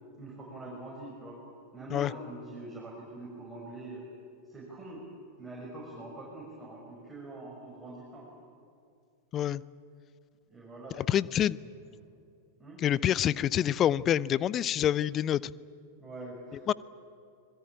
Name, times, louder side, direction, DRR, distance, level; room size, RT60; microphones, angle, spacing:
voice 1, 0.2-1.4 1.7-4.1 4.4-5.0 5.4-8.3 10.5-11.4 11.8-12.0 12.6-12.8 16.0-16.7, right 2 dB, 10° right, -4 dB, 6.3 m, -44 dB
voice 2, 11.1-11.6 12.8-15.5 16.7-16.8, left 10 dB, 30° left, 21 dB, 0.6 m, -26 dB
26.0 x 21.5 x 8.9 m, 2.5 s
figure-of-eight pair, 90°, 0 cm